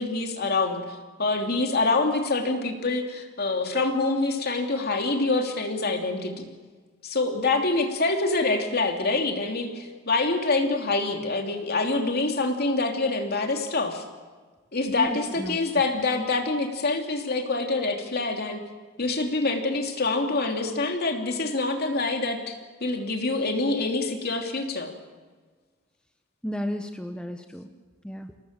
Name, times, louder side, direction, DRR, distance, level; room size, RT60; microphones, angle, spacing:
voice 1, 0.0-6.5 7.0-14.0 14.7-18.6 19.0-22.6 22.8-24.9, left 3 dB, 50° left, 3 dB, 2.9 m, -26 dB
voice 2, 14.9-15.6 26.4-27.7 28.0-28.3, equal, 5° left, 6 dB, 1.0 m, -33 dB
28.0 x 18.5 x 7.5 m, 1.4 s
head